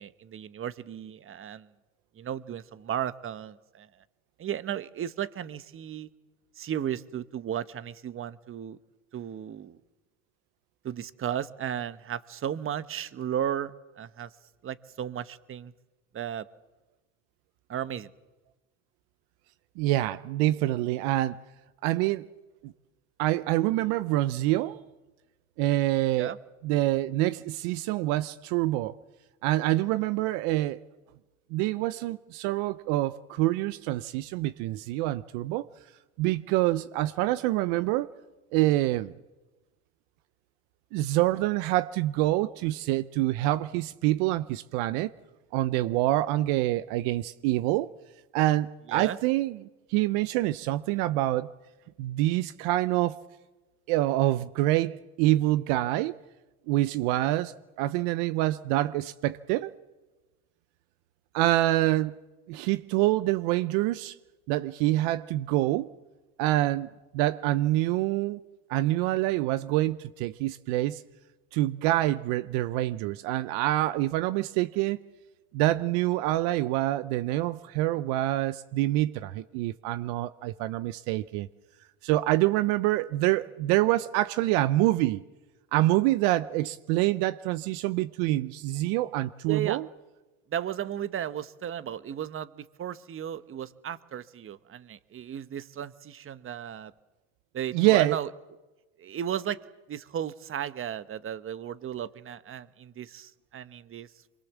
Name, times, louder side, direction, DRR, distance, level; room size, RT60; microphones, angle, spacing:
voice 1, 0.0-1.7 2.1-3.9 4.4-6.1 6.6-8.8 9.1-9.8 10.8-14.3 14.6-15.7 16.1-16.5 17.7-18.1 26.2-26.4 48.9-49.2 89.5-89.8 90.5-96.9 97.5-98.3 99.0-99.6 99.9-104.1, right 10 dB, 35° right, 1.0 m, -35 dB
voice 2, 19.8-21.4 21.8-22.3 22.6-22.7 23.2-24.8 25.6-26.3 26.6-29.0 29.4-30.8 31.5-35.7 36.2-38.1 38.5-39.1 40.9-45.1 45.5-47.9 48.3-51.5 52.0-53.2 53.9-56.2 56.7-59.7 61.3-62.2 62.5-64.2 64.5-65.9 66.4-66.9 67.1-68.4 68.7-71.0 71.5-75.0 75.5-81.5 82.0-85.2 85.7-89.8 97.7-98.2, right 16 dB, 75° right, 0.7 m, -26 dB
24.0 x 22.0 x 7.3 m
supercardioid pair, 90°, 36 cm